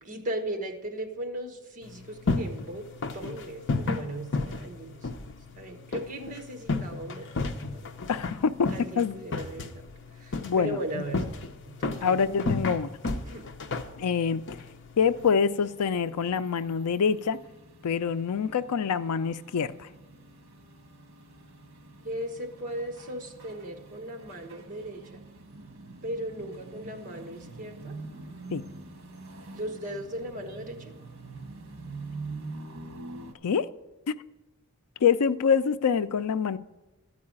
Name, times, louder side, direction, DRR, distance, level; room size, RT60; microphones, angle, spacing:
voice 1, 0.0-2.8 3.1-5.1 5.6-7.9 8.7-9.8 10.2-11.2 11.6-12.3 13.0-13.4 22.0-25.2 26.0-28.0 29.5-30.9, right 1 dB, 35° right, 4 dB, 1.4 m, -37 dB
sound 1, 1.8-15.3, left 3 dB, 55° left, 0.7 m, -33 dB
voice 2, 8.1-8.7 9.0-9.2 10.4-11.0 12.0-12.9 14.0-14.4 15.0-17.4 17.8-19.9 28.5-28.6 33.4-33.7 34.1-34.2 35.0-36.6, left 6 dB, 85° left, 14 dB, 0.5 m, -25 dB
sound 2, 15.2-33.3, right 3 dB, 65° right, 1.4 m, -45 dB
13.0 x 4.8 x 8.7 m, 1.1 s
head